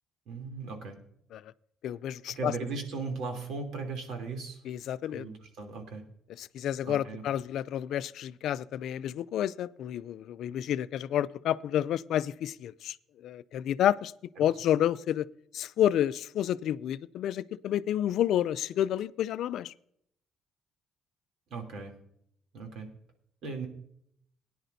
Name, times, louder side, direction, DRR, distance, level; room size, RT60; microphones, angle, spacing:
voice 1, 0.3-1.0 2.3-4.6 5.0-6.0 6.8-7.2 14.4-14.5 21.5-21.9 22.5-22.9 23.4-23.7, right 4 dB, 70° right, 3.0 m, -37 dB
voice 2, 1.8-2.5 4.7-5.3 6.4-13.0 13.2-14.1 14.4-15.3 15.5-19.7, left 11 dB, 65° left, 0.4 m, -30 dB
19.0 x 10.0 x 2.7 m
cardioid pair, 130°, 0 cm